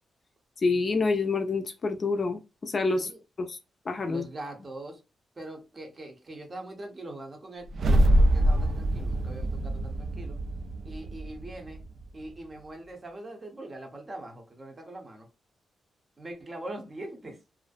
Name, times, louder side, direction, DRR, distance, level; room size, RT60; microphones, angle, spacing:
voice 1, 0.6-3.1 3.5-3.6 3.9-4.3, left 3 dB, 40° left, 0.4 m, -27 dB
voice 2, 4.1-5.0 5.4-10.4 10.8-11.9 12.1-15.3 16.2-17.4, right 1 dB, 30° right, 0.7 m, -42 dB
sound 1, 7.7-12.0, right 1 dB, 65° right, 0.3 m, -25 dB
2.5 x 2.1 x 2.4 m
cardioid pair, 105°, 0 cm